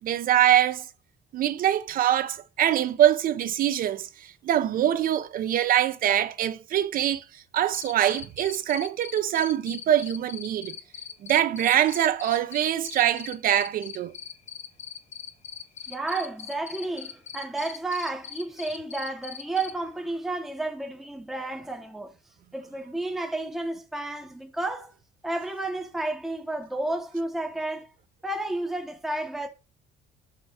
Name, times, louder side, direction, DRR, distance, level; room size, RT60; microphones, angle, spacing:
voice 1, 0.0-0.9 1.3-7.2 7.5-10.7 11.2-14.1, right 11 dB, 55° right, 0.6 m, -24 dB
Cricket, 7.7-19.7, left 8 dB, 40° left, 0.6 m, -40 dB
voice 2, 15.9-22.1 22.5-24.9 25.2-27.9 28.2-29.5, right 2 dB, ahead, 0.7 m, -31 dB
5.0 x 4.5 x 4.2 m
cardioid pair, 110°, 17 cm